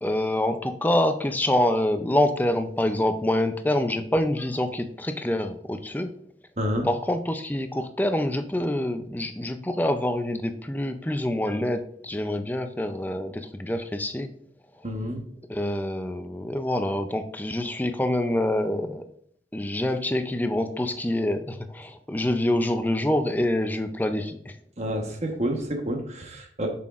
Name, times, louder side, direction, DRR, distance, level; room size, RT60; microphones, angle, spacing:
voice 1, 0.0-6.1 6.8-14.3 15.5-19.1 19.5-24.5, left 1 dB, 10° left, 7 dB, 0.4 m, -26 dB
voice 2, 6.6-6.9 14.8-15.2 24.8-26.7, equal, 40° right, 3 dB, 1.1 m, -29 dB
7.4 x 5.9 x 2.5 m, 0.65 s
head